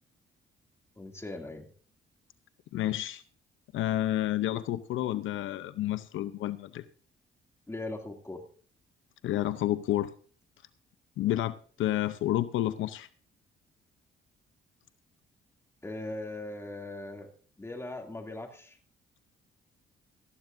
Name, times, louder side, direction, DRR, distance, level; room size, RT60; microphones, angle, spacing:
voice 1, 1.0-1.7 7.7-8.4 15.8-17.3 17.6-18.8, left 2 dB, 15° left, 2 dB, 2.6 m, -39 dB
voice 2, 2.7-3.2 3.7-6.8 9.2-10.1 11.2-13.1, left 13 dB, 80° left, 13 dB, 0.7 m, -30 dB
18.0 x 13.5 x 2.6 m, 0.43 s
cardioid pair, 90°, 20 cm